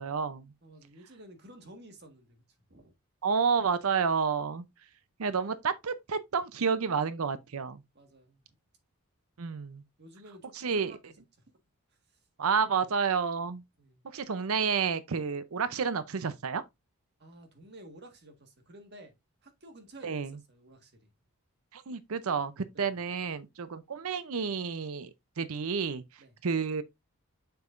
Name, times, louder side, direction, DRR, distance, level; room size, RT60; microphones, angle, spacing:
voice 1, 0.0-0.5 3.2-4.7 5.2-7.8 9.4-9.8 10.6-10.9 12.4-13.6 14.1-16.6 20.0-20.4 21.7-25.1 25.4-26.0 26.4-26.8, right 5 dB, 70° right, 0.6 m, -30 dB
voice 2, 0.6-2.4 2.7-2.9 7.9-8.4 10.0-11.0 13.8-14.1 17.2-19.1 19.4-21.1 22.7-23.0 26.2-26.3, right 1 dB, 45° right, 1.6 m, -52 dB
6.9 x 6.6 x 2.5 m
head